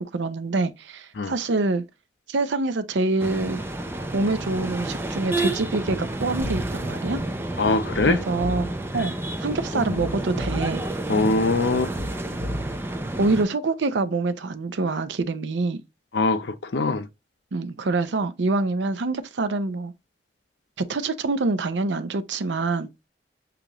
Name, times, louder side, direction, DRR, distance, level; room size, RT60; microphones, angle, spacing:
voice 1, 0.0-1.8 2.3-3.6 4.1-7.2 8.0-9.1 9.4-10.8 13.2-15.8 17.5-19.9 20.8-22.9, right 3 dB, 85° right, 0.6 m, -25 dB
sound 1, 3.2-13.5, right 1 dB, 15° right, 0.4 m, -30 dB
sound 2, 6.4-6.8 8.0-8.8 10.0-10.8 12.0-12.8, equal, 35° right, 1.1 m, -33 dB
voice 2, 7.6-8.2 11.1-11.9 16.1-16.5 16.7-17.0, left 3 dB, 75° left, 0.6 m, -22 dB
6.9 x 2.5 x 2.9 m
head